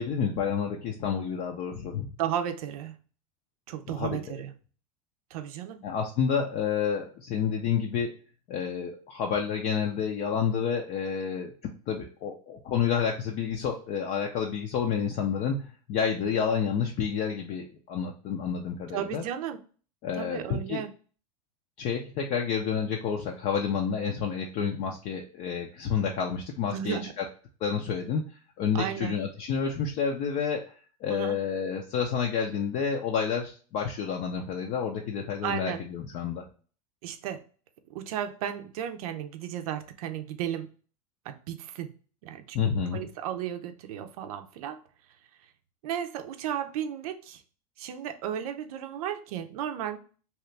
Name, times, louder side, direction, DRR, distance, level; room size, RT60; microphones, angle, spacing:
voice 1, 0.0-2.1 3.9-4.4 5.8-8.1 8.5-11.5 11.9-19.2 20.0-20.8 21.8-27.2 27.6-28.2 28.6-30.7 31.0-36.4 42.5-43.0, left 7 dB, 50° left, 1 dB, 0.6 m, -29 dB
voice 2, 2.2-2.9 3.7-4.5 5.3-5.8 18.9-19.6 20.1-20.9 26.7-27.1 28.7-29.2 31.1-31.4 35.4-35.9 37.0-37.4 37.9-40.7 41.2-41.9 42.2-42.6 42.9-44.8 45.8-47.4 47.8-50.0, right 10 dB, 70° right, 8 dB, 0.5 m, -34 dB
2.9 x 2.4 x 3.2 m, 0.40 s
hypercardioid pair, 100°, 19 cm